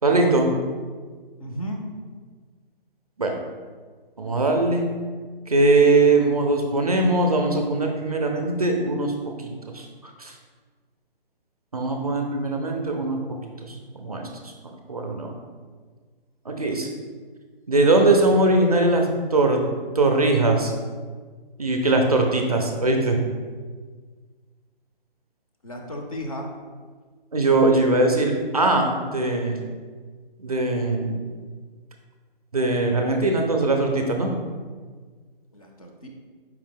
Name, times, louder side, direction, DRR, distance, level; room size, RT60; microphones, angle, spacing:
voice 1, 0.0-0.5 3.2-3.3 4.2-4.8 5.5-9.1 9.4-9.9 10.2-10.3 11.7-14.3 14.6-15.3 16.5-16.9 17.7-19.6 20.0-20.7 21.6-23.2 27.3-29.6 30.4-31.2 32.5-34.3, right 2 dB, 40° right, 2 dB, 0.4 m, -21 dB
voice 2, 1.4-1.8 25.6-26.5 35.5-36.1, equal, 40° left, 1 dB, 0.4 m, -34 dB
4.7 x 2.7 x 3.6 m, 1.5 s
hypercardioid pair, 170°, 29 cm